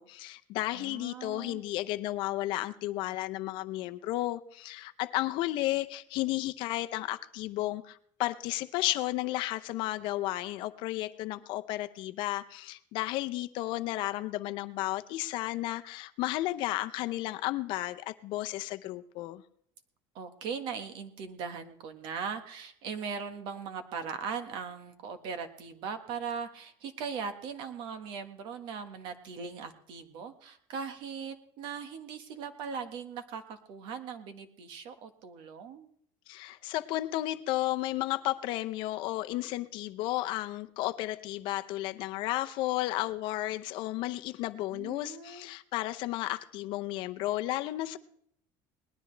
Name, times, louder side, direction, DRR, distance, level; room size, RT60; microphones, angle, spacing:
voice 1, 0.0-19.4 36.3-48.0, left 16 dB, 55° left, 10 dB, 0.7 m, -33 dB
voice 2, 0.7-1.6 20.1-35.9 44.7-45.5, right 6 dB, 50° right, 8 dB, 1.5 m, -39 dB
20.0 x 12.5 x 3.3 m, 0.67 s
cardioid pair, 170°, 10 cm